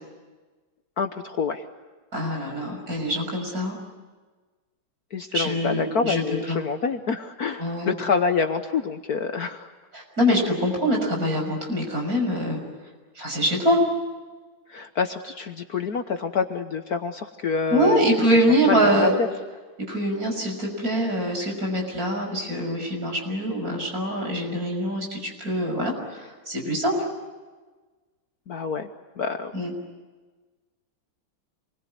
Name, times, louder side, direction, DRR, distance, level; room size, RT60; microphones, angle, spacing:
voice 1, 1.0-1.6 5.1-9.7 14.7-18.3 18.7-19.3 28.5-28.9 29.2-29.6, left 5 dB, 55° left, 7 dB, 1.4 m, -27 dB
voice 2, 2.1-3.8 5.3-6.2 6.5-6.6 7.6-7.9 9.9-12.6 13.2-13.8 17.7-19.1 19.9-26.9 29.5-29.7, equal, 45° right, 1 dB, 6.6 m, -24 dB
28.0 x 21.5 x 9.6 m, 1.3 s
omnidirectional pair, 2.2 m